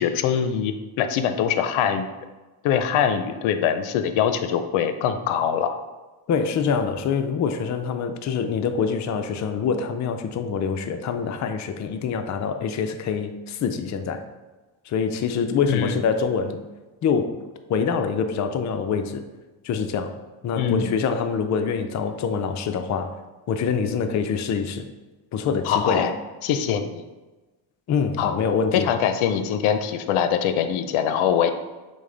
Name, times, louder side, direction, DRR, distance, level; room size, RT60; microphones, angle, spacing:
voice 1, 0.0-2.1 2.6-5.8 15.7-16.0 20.6-21.0 25.6-26.1 26.4-27.0 28.2-28.3 28.7-31.5, left 8 dB, 80° left, 9 dB, 0.6 m, -23 dB
voice 2, 6.3-14.2 14.9-16.6 17.0-17.4 17.7-19.3 19.6-20.1 20.4-23.1 23.5-24.9 25.3-26.1 27.9-28.9, left 6 dB, 40° left, 7 dB, 0.5 m, -25 dB
6.2 x 2.1 x 3.8 m, 1.2 s
cardioid pair, 95°, 48 cm